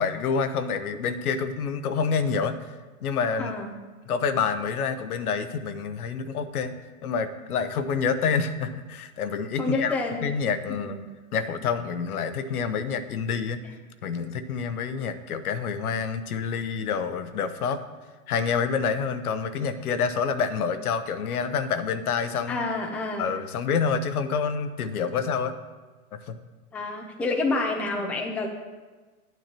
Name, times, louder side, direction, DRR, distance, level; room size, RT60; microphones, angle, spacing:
voice 1, 0.0-2.6 3.0-3.5 4.1-6.7 7.0-9.9 10.2-11.0 11.3-13.6 14.0-17.8 18.3-22.7 23.2-25.6 26.1-26.4, left 6 dB, 75° left, 10 dB, 0.9 m, -27 dB
voice 2, 3.4-3.7 9.6-10.2 10.7-11.0 22.5-23.3 26.7-28.5, left 3 dB, 5° left, 1 dB, 0.5 m, -28 dB
9.5 x 9.1 x 2.9 m, 1.3 s
hypercardioid pair, 125°, 44 cm